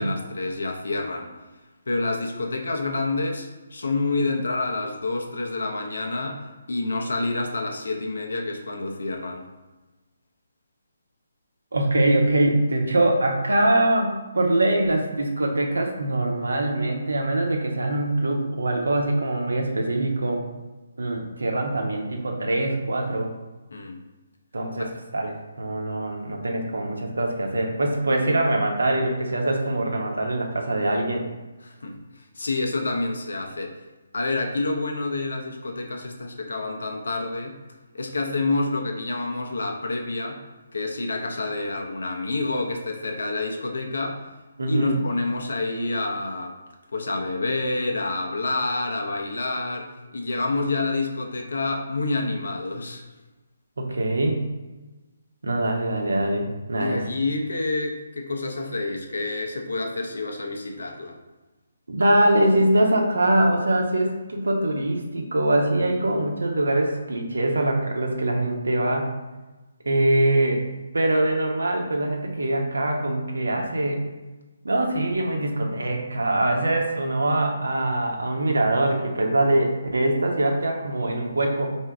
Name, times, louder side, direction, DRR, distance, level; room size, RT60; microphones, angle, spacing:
voice 1, 0.0-1.3 1.9-9.5 23.7-24.0 24.8-24.9 31.6-32.0 32.4-33.8 34.1-37.6 37.9-40.4 40.7-44.2 44.7-46.5 46.9-53.0 56.8-61.2, left 2 dB, 65° left, 2 dB, 0.7 m, -28 dB
voice 2, 11.7-20.4 21.0-23.3 24.5-31.3 44.6-45.0 53.8-54.5 55.4-57.0 61.9-69.1 69.8-70.6 70.9-74.0 74.6-81.8, right 1 dB, 70° right, 1 dB, 0.8 m, -23 dB
4.7 x 2.7 x 3.4 m, 1.2 s
figure-of-eight pair, 140°, 0 cm